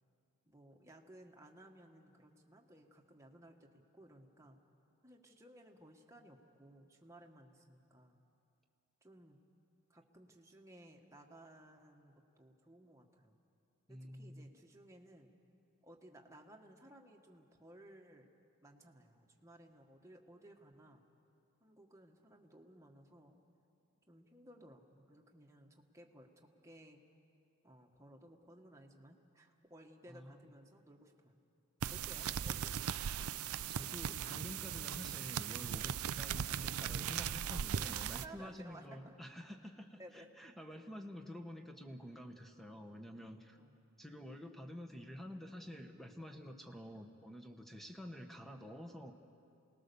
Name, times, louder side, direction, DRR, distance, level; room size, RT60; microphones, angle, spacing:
voice 1, 0.4-4.6 5.0-8.2 9.0-9.4 9.9-13.4 13.9-15.3 15.8-18.3 18.6-21.0 21.6-23.4 24.1-27.0 27.6-31.4 31.9-33.5 37.7-39.0 40.0-40.3 43.5-43.9, right 1 dB, 15° right, 1 dB, 1.5 m, -58 dB
voice 2, 13.9-14.5 30.1-30.4 33.6-43.6 44.0-49.1, equal, ahead, 4 dB, 1.3 m, -49 dB
sound 1, 31.8-38.2, right 8 dB, 85° right, 0.5 m, -38 dB
28.0 x 19.5 x 7.0 m, 2.5 s
head